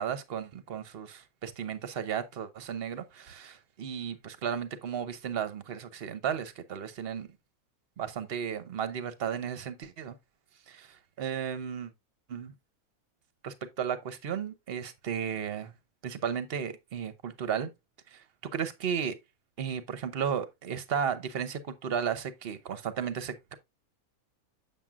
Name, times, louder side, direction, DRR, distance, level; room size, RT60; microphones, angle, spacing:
voice 1, 0.0-7.3 8.0-10.2 10.7-11.9 12.3-12.5 13.4-15.7 16.0-17.7 18.1-18.2 18.5-19.1 19.6-23.5, right 8 dB, 50° right, 0.8 m, -34 dB
7.4 x 7.2 x 2.4 m
omnidirectional pair, 1.6 m